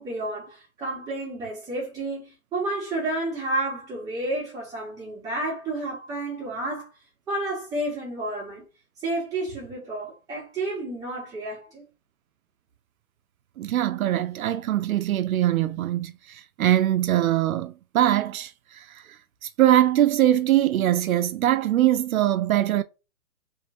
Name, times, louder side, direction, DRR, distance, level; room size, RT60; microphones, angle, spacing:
voice 1, 0.0-6.9 7.3-8.6 9.0-11.8, right 2 dB, 10° right, 1.8 m, -31 dB
voice 2, 13.6-19.0 19.4-22.8, right 12 dB, 75° right, 0.5 m, -22 dB
3.9 x 3.0 x 2.6 m
hypercardioid pair, 160°, 42 cm